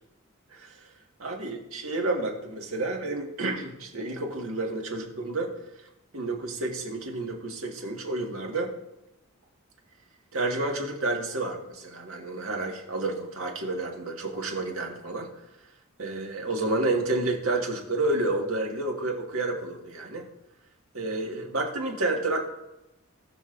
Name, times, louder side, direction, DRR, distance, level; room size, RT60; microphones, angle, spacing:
voice 1, 1.2-5.5 6.1-8.7 10.3-15.3 16.0-20.3 20.9-22.5, right 2 dB, 80° right, 1 dB, 2.0 m, -30 dB
19.0 x 6.4 x 2.6 m, 0.91 s
head